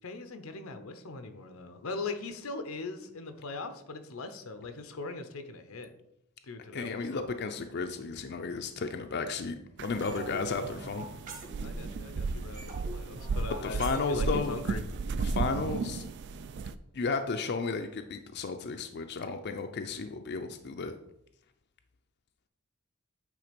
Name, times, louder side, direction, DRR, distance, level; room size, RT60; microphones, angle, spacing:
voice 1, 0.0-5.9 6.4-7.2 10.0-10.5 11.6-14.8, left 3 dB, 90° left, 8 dB, 0.8 m, -40 dB
voice 2, 6.7-11.1 13.6-14.6 15.2-16.0 16.9-20.9, left 4 dB, 50° left, 6 dB, 0.5 m, -33 dB
sound 1, 9.8-16.8, right 4 dB, 55° right, 0.3 m, -35 dB
sound 2, 10.0-12.0 12.2-15.0, right 2 dB, 40° right, 1.5 m, -45 dB
8.6 x 3.4 x 5.1 m, 0.79 s
head